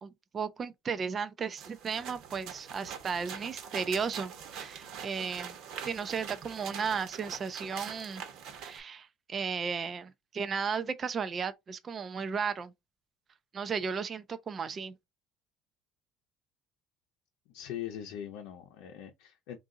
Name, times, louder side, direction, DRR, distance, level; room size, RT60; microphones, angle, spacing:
voice 1, 0.0-5.6 5.8-8.2 8.6-12.7 13.5-14.9, right 6 dB, 25° right, 0.3 m, -35 dB
sound 1, 1.5-8.8, right 7 dB, 55° right, 0.9 m, -44 dB
voice 2, 17.5-19.6, left 10 dB, 85° left, 0.7 m, -41 dB
3.8 x 2.4 x 3.7 m
cardioid pair, 170°, 0 cm